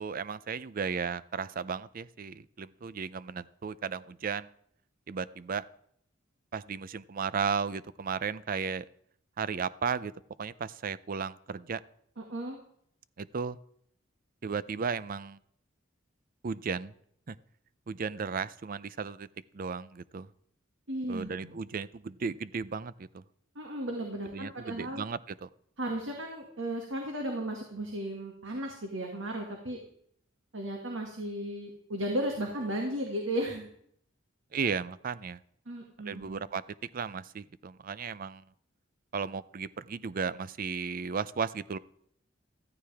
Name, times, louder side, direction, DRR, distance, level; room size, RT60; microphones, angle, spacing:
voice 1, 0.0-4.5 5.1-5.6 6.5-8.9 9.4-10.1 10.4-11.8 13.2-13.6 14.4-15.4 16.4-16.9 17.3-17.4 17.9-19.3 19.5-20.3 21.1-23.2 24.3-25.5 34.5-35.4 36.0-38.4 39.1-41.8, right 5 dB, 45° right, 17 dB, 0.5 m, -35 dB
voice 2, 12.2-12.6 20.9-21.6 23.6-25.0 25.8-29.8 30.5-33.7 35.7-36.4, right 1 dB, 90° right, 1 dB, 2.0 m, -35 dB
14.5 x 14.0 x 3.5 m, 0.67 s
head